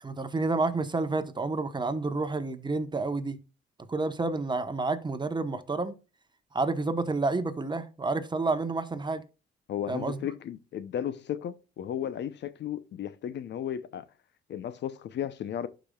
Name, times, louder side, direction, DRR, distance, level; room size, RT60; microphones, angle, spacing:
voice 1, 0.0-3.4 3.9-5.9 6.5-9.2 9.9-10.2, right 3 dB, 20° right, 1.0 m, -29 dB
voice 2, 9.7-14.1 14.5-15.7, left 10 dB, 65° left, 0.7 m, -34 dB
11.5 x 5.1 x 2.3 m
cardioid pair, 90°, 20 cm